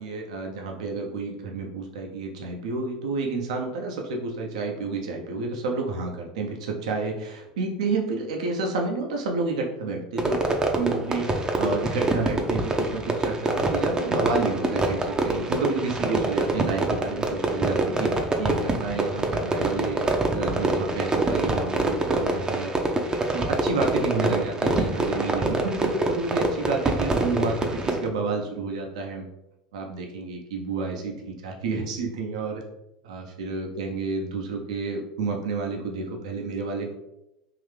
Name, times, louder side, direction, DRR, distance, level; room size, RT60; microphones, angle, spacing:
voice 1, 0.0-10.4 10.7-20.0 20.3-22.7 23.3-29.2 29.7-32.6 33.0-37.0, right 4 dB, 75° right, 1 dB, 0.6 m, -30 dB
Fireworks, 10.2-28.1, right 2 dB, 20° right, 0.6 m, -25 dB
3.8 x 2.7 x 3.2 m, 0.88 s
hypercardioid pair, 75°, 4 cm